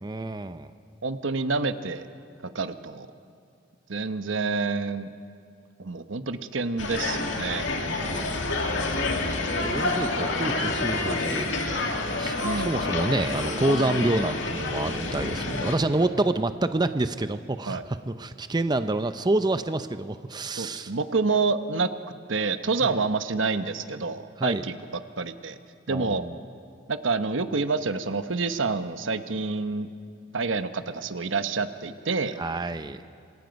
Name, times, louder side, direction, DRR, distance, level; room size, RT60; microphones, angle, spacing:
voice 1, 0.0-0.7 7.9-8.4 9.0-11.5 12.2-20.9 22.8-23.0 24.4-24.6 25.9-26.3 32.4-33.0, right 2 dB, 20° right, 10 dB, 0.6 m, -28 dB
voice 2, 1.0-2.1 2.5-3.1 3.9-5.1 5.8-7.7 12.4-12.7 17.7-17.8 20.6-21.9 22.3-24.8 25.2-25.6 25.9-26.2 26.9-29.9 30.3-32.4, right 4 dB, 85° right, 10 dB, 1.0 m, -28 dB
sound 1, 6.8-15.8, left 2 dB, 70° left, 2.3 m, -28 dB
27.0 x 26.0 x 5.3 m, 2.3 s
head